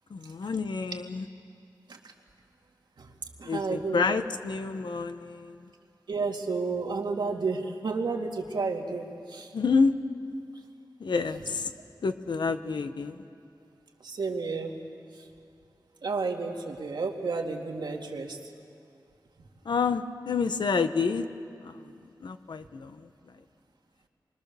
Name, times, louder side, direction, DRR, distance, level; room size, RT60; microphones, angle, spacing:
voice 1, 0.1-1.3 3.4-5.7 9.5-9.9 11.0-11.7 12.0-13.2 19.6-21.3 21.6-21.9 22.2-23.1, left 4 dB, 90° left, 9 dB, 1.1 m, -28 dB
voice 2, 3.4-4.0 6.1-9.5 14.0-14.7 16.0-18.4, right 4 dB, 85° right, 2 dB, 2.5 m, -31 dB
28.5 x 23.5 x 7.0 m, 2.4 s
wide cardioid pair, 75°, 7 cm